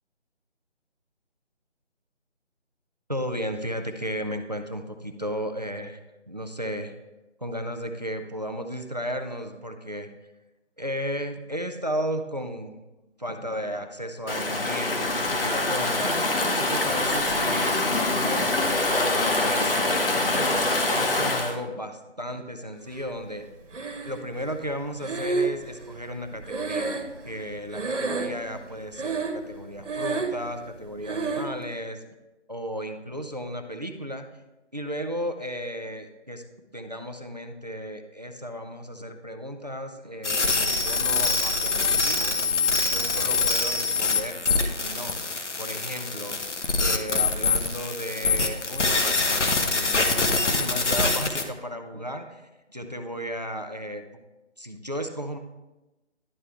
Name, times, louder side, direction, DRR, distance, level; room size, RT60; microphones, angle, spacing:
voice 1, 3.1-6.0 6.3-6.9 7.4-10.1 10.8-12.8 13.2-16.2 16.5-23.4 24.0-32.0 32.5-34.3 34.7-36.4 36.7-42.4 42.7-45.2 45.6-46.4 46.8-52.4 52.7-54.0 54.6-55.4, equal, 40° right, 7 dB, 0.5 m, -34 dB
Stream / Ocean, 14.3-21.5, left 2 dB, 50° left, 1.0 m, -24 dB
Breathing, 23.7-24.4 25.0-27.5 27.7-28.5 28.9-29.5 29.8-30.5 31.1-31.5, right 4 dB, 85° right, 1.2 m, -29 dB
sound 1, 40.2-51.4, left 3 dB, 75° left, 1.1 m, -24 dB
11.0 x 4.5 x 3.4 m, 1.1 s
figure-of-eight pair, 175°, 35 cm